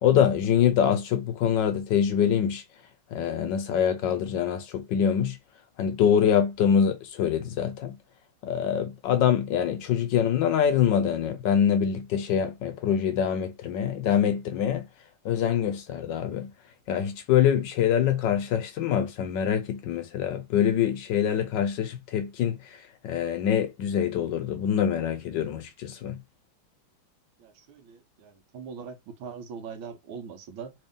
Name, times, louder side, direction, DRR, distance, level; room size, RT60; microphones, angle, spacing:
voice 1, 0.0-2.6 3.1-5.4 5.8-8.0 8.4-14.9 15.2-16.5 16.9-22.8 23.0-26.2, left 8 dB, 70° left, 1.1 m, -25 dB
voice 2, 27.4-30.7, right 6 dB, 80° right, 1.6 m, -41 dB
3.5 x 2.7 x 3.5 m
omnidirectional pair, 2.3 m